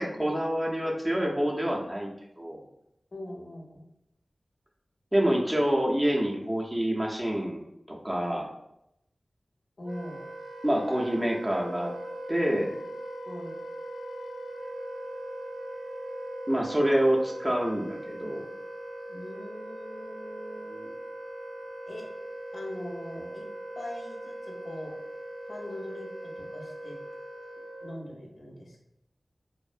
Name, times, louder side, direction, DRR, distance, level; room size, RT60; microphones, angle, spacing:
voice 1, 0.0-2.1 2.4-2.6 5.1-8.5 10.6-11.9 12.3-12.7 16.5-18.5, equal, 20° right, -1 dB, 0.5 m, -27 dB
voice 2, 3.1-3.8 9.8-10.3 13.2-13.6 19.1-20.9 21.9-22.1 22.5-23.5 23.8-24.9 25.5-27.0 27.8-28.8, left 1 dB, 65° left, -2 dB, 0.6 m, -41 dB
Wind instrument woodwind instrument, 9.8-28.0, right 1 dB, 70° right, 0.5 m, -40 dB
2.6 x 2.0 x 2.4 m, 0.82 s
wide cardioid pair, 55°, 0 cm